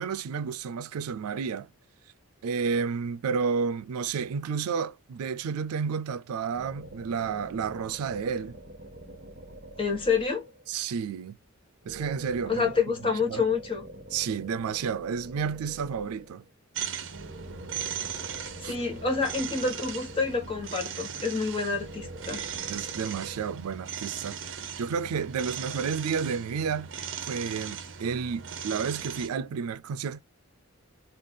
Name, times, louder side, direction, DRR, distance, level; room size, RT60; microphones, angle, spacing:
voice 1, 0.0-1.7 2.4-8.6 10.7-11.4 11.9-12.7 13.3-13.4 14.1-16.4 18.6-18.7 22.7-26.9 27.3-30.2, right 6 dB, 90° right, 0.4 m, -31 dB
sound 1, 6.5-10.7 11.8-16.5 17.1-21.1 21.7-23.4, right 1 dB, 40° right, 1.1 m, -46 dB
voice 2, 9.8-10.5 12.5-13.8 18.6-22.4, left 5 dB, 25° left, 0.9 m, -28 dB
sound 2, 16.7-29.3, right 7 dB, 60° right, 0.7 m, -38 dB
3.3 x 2.3 x 3.6 m
head